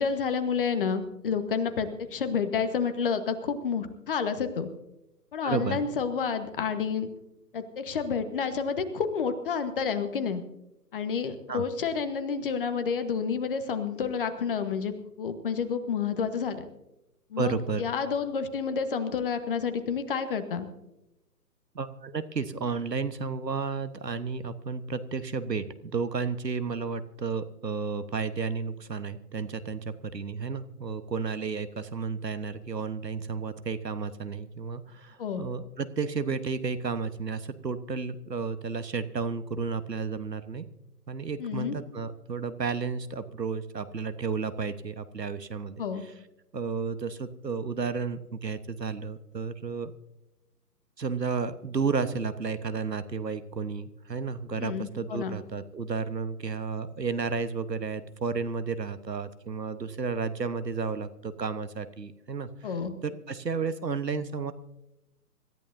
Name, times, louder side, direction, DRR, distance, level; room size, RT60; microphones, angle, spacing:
voice 1, 0.0-4.7 5.3-7.1 7.5-10.4 10.9-14.9 15.2-16.6 17.3-20.7 35.2-35.5 41.4-41.8 45.8-46.0 54.6-55.4 62.6-62.9, left 6 dB, 35° left, 9 dB, 1.3 m, -29 dB
voice 2, 5.4-5.8 11.5-11.6 17.4-17.8 21.7-40.6 41.1-46.1 46.5-49.9 51.0-62.7 63.0-64.5, right 5 dB, 85° right, 12 dB, 1.3 m, -32 dB
26.0 x 14.0 x 2.7 m, 0.91 s
figure-of-eight pair, 140°, 48 cm